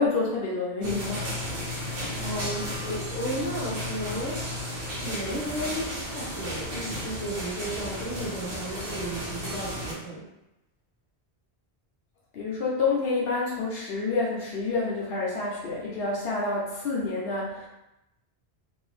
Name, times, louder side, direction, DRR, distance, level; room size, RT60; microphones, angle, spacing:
voice 1, 0.0-1.6 2.0-2.1 12.3-17.7, left 3 dB, 70° left, -4 dB, 0.8 m, -28 dB
sound 1, 0.8-9.9, equal, 65° right, 0.8 m, -34 dB
voice 2, 2.2-4.4 5.0-10.2, equal, 15° left, -7 dB, 0.8 m, -34 dB
2.7 x 2.2 x 3.1 m, 0.90 s
omnidirectional pair, 1.1 m